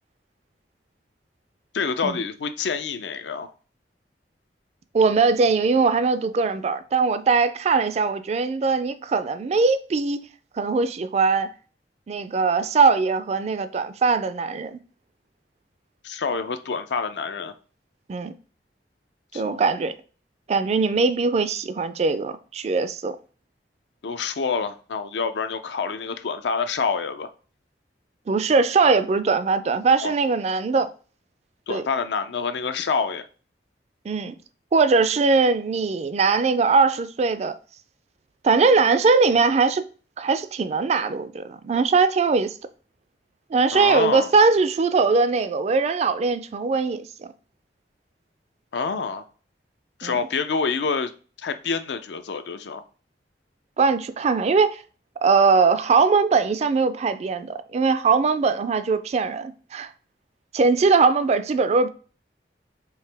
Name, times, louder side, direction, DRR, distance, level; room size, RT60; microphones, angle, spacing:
voice 1, 1.7-3.5 16.0-17.5 19.3-19.6 24.0-27.3 30.0-30.1 31.7-33.3 43.7-44.3 48.7-49.2 50.0-51.1 51.4-52.8, left 5 dB, 80° left, 0.5 m, -27 dB
voice 2, 4.9-10.3 10.5-11.5 12.1-14.8 18.1-18.3 19.3-19.9 20.5-23.2 28.3-30.9 31.7-31.8 34.1-34.4 34.7-37.5 38.4-39.9 40.2-42.5 43.5-47.3 50.0-50.2 53.8-54.8 55.2-59.9 60.5-61.9, right 4 dB, 40° right, 0.3 m, -21 dB
4.6 x 2.9 x 3.3 m
head